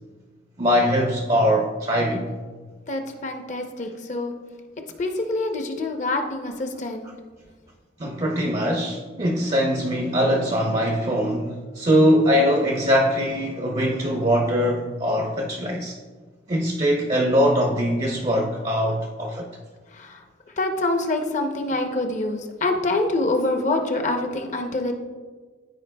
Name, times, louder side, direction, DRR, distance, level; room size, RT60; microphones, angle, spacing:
voice 1, 0.6-2.3 8.0-16.0 16.5-19.5, equal, 30° right, 0.5 m, -22 dB
voice 2, 2.9-4.3 5.0-7.1 19.9-20.2 20.6-24.9, left 2 dB, 40° left, 0.6 m, -25 dB
13.5 x 4.7 x 2.2 m
head